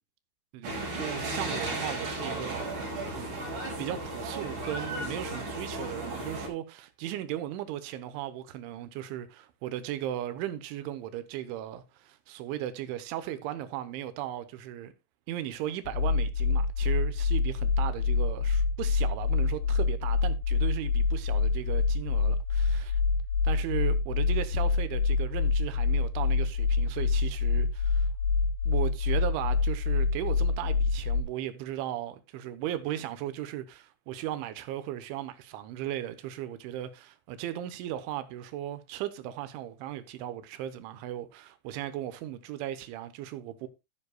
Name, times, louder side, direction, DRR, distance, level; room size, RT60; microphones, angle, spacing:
voice 1, 0.5-14.9 15.3-22.9 23.4-28.1 28.7-43.7, right 12 dB, 80° right, 3.3 m, -37 dB
sound 1, 0.6-6.5, right 2 dB, 45° right, 6.8 m, -35 dB
sound 2, 15.9-31.2, left 4 dB, 70° left, 3.6 m, -26 dB
12.5 x 10.5 x 2.3 m
omnidirectional pair, 5.5 m